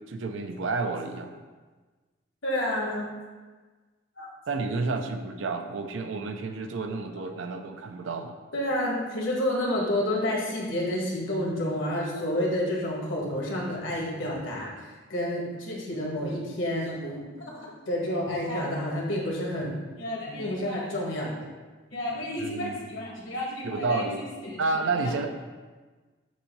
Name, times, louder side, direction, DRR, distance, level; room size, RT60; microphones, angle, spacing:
voice 1, 0.0-1.3 4.5-8.3 22.4-22.8 23.6-24.2 24.6-25.3, right 3 dB, 65° right, 6 dB, 0.5 m, -30 dB
voice 2, 2.4-3.1 4.2-4.3 8.5-14.8 15.1-17.2 17.5-19.7 20.0-21.3 21.9-25.1, left 1 dB, 65° left, -3 dB, 1.5 m, -30 dB
7.3 x 2.7 x 5.3 m, 1.3 s
head